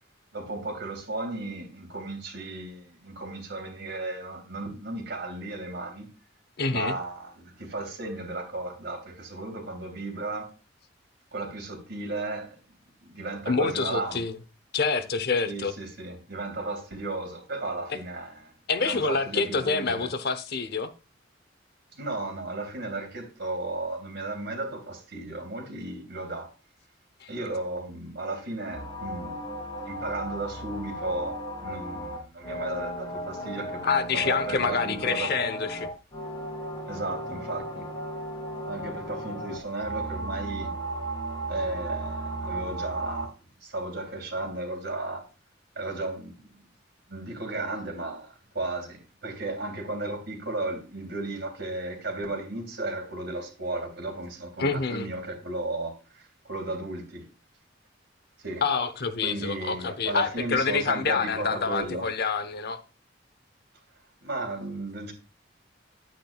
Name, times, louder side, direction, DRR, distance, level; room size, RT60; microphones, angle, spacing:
voice 1, 0.3-6.1 6.7-10.5 11.3-12.6 13.0-14.2 15.4-18.5 18.8-20.1 21.9-26.5 27.3-29.5 29.8-35.4 36.8-37.9 38.7-40.7 41.5-43.3 43.6-45.3 45.7-46.5 47.1-57.3 58.4-58.6 59.2-62.0 64.2-65.1, right 2 dB, 60° right, 3.1 m, -34 dB
voice 2, 6.6-6.9 13.5-14.4 14.7-15.7 17.9-18.0 18.7-20.9 27.2-27.3 33.8-35.9 54.6-55.1 58.6-62.8, left 4 dB, 55° left, 0.8 m, -27 dB
sound 1, 28.7-43.3, right 1 dB, 25° left, 1.9 m, -35 dB
10.5 x 8.8 x 2.4 m
head